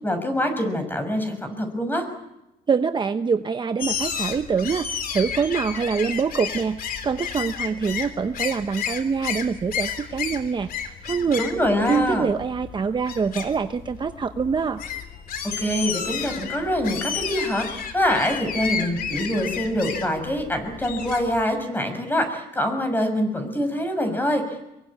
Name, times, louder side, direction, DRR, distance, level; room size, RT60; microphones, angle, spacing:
voice 1, 0.0-2.1 11.4-12.3 15.6-24.6, equal, 10° left, 7 dB, 6.4 m, -25 dB
voice 2, 2.7-11.4 11.9-14.8, right 5 dB, 25° right, 9 dB, 0.9 m, -25 dB
sound 1, 3.8-21.4, left 7 dB, 60° left, 3.6 m, -32 dB
24.5 x 23.0 x 8.6 m, 0.89 s
cardioid pair, 110°, 17 cm